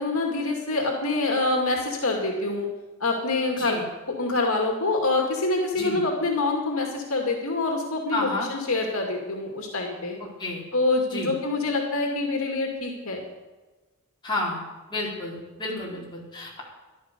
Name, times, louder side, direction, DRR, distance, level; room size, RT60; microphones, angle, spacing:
voice 1, 0.0-2.7 3.0-3.8 4.1-10.2 10.7-13.2 15.7-16.1, left 2 dB, 70° left, 1 dB, 2.4 m, -26 dB
voice 2, 8.1-8.5 10.4-10.6 11.1-11.3 14.2-14.6 14.9-16.6, left 2 dB, 20° left, -4 dB, 4.2 m, -30 dB
14.0 x 11.5 x 6.8 m, 1.2 s
head